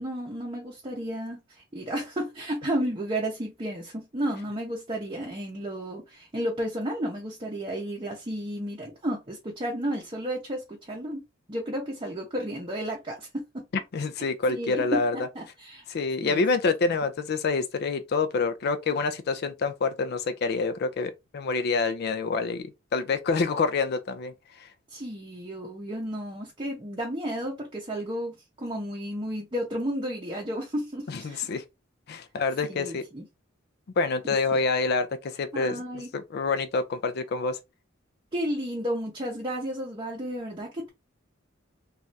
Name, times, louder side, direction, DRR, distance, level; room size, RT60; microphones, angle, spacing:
voice 1, 0.0-1.4 1.7-11.2 11.5-13.6 14.5-15.8 16.2-16.4 24.9-31.4 32.7-33.2 34.5-34.6 35.5-36.1 38.3-40.9, equal, 25° right, 0.6 m, -32 dB
voice 2, 13.9-15.2 15.9-24.7 31.1-31.6 32.1-33.0 34.0-37.6, left 4 dB, 55° left, 0.4 m, -27 dB
3.2 x 2.4 x 2.6 m
head